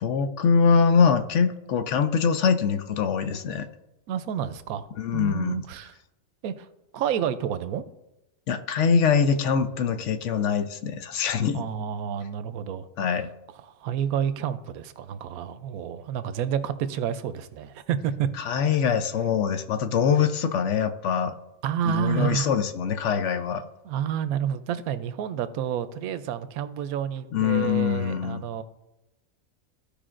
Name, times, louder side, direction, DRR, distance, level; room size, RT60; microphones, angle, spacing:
voice 1, 0.0-3.7 5.0-5.5 8.5-11.6 13.0-13.3 18.4-21.3 21.9-23.7 27.3-28.4, left 6 dB, 65° left, 9 dB, 0.9 m, -23 dB
voice 2, 4.1-4.9 5.1-5.9 6.4-6.7 6.9-7.8 11.5-12.9 13.6-18.3 21.6-22.5 23.8-28.6, right 9 dB, 90° right, 13 dB, 1.0 m, -29 dB
14.5 x 5.1 x 2.5 m, 0.98 s
omnidirectional pair, 1.5 m